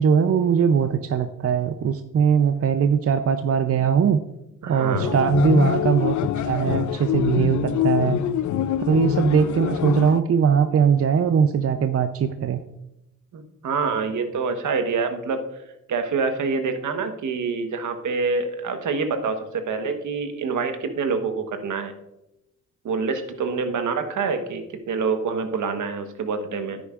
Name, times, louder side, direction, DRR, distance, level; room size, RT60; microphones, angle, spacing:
voice 1, 0.0-4.2 4.7-8.2 8.9-12.6, right 7 dB, 45° right, 9 dB, 0.6 m, -20 dB
voice 2, 4.6-5.2 13.3-15.4 15.9-21.9 22.8-26.8, right 4 dB, 70° right, 7 dB, 1.2 m, -26 dB
sound 1, 4.9-10.2, left 10 dB, 65° left, 0.5 m, -24 dB
10.0 x 9.0 x 2.5 m, 0.88 s
cardioid pair, 65°, 32 cm